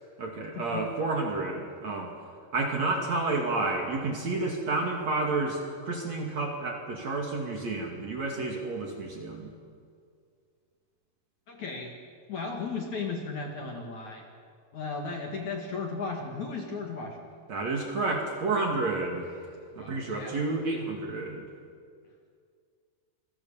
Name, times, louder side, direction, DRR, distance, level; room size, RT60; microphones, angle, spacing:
voice 1, 0.2-2.1 2.5-9.5 17.5-19.3 19.8-21.5, right 3 dB, 45° right, 1 dB, 2.9 m, -30 dB
voice 2, 11.5-11.9 12.3-14.3 14.7-17.3 19.7-20.4, left 4 dB, 50° left, 2 dB, 2.8 m, -35 dB
27.5 x 22.5 x 7.3 m, 2.2 s
omnidirectional pair, 5.2 m